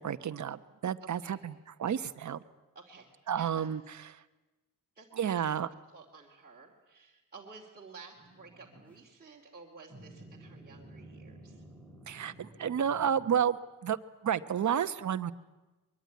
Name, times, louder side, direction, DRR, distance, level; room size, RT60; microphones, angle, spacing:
voice 1, 0.0-1.5 1.8-2.4 3.3-4.1 5.2-5.7 12.1-13.6 13.8-14.0 14.2-15.3, right 8 dB, 55° right, 12 dB, 1.0 m, -31 dB
voice 2, 2.7-3.7 5.0-5.5 5.9-11.6, right 4 dB, 25° right, -3 dB, 2.8 m, -52 dB
sound 1, 8.1-9.0 9.9-13.4, right 1 dB, 5° left, 4.7 m, -52 dB
23.0 x 22.5 x 9.5 m, 1.1 s
wide cardioid pair, 140°, 34 cm